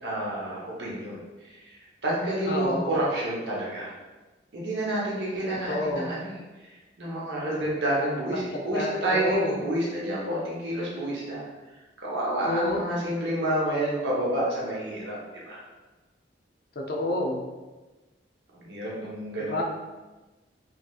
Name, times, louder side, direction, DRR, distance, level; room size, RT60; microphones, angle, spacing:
voice 1, 0.0-1.2 2.0-3.9 4.5-6.4 7.0-11.4 12.0-15.2 15.5-15.6 18.5-19.6, right 1 dB, 75° right, -5 dB, 0.8 m, -29 dB
voice 2, 2.5-2.9 5.7-6.1 8.3-9.6 12.4-12.9 16.8-17.5 19.4-19.6, left 1 dB, 55° left, 0 dB, 0.4 m, -29 dB
3.1 x 2.7 x 2.3 m, 1.2 s
head